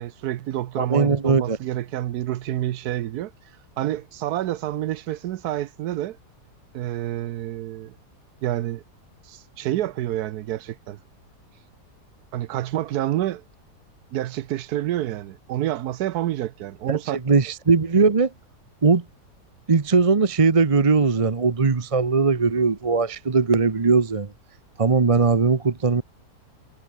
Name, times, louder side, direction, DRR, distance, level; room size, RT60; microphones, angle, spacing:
voice 1, 0.0-3.3 3.8-6.2 6.7-8.0 8.4-8.8 9.3-11.0 12.3-13.4 14.1-17.2, right 13 dB, 75° right, 1.2 m, -28 dB
voice 2, 0.8-1.6 17.1-18.3 18.8-19.0 19.7-24.3 24.8-26.0, right 4 dB, 30° right, 0.7 m, -19 dB
omnidirectional pair, 1.8 m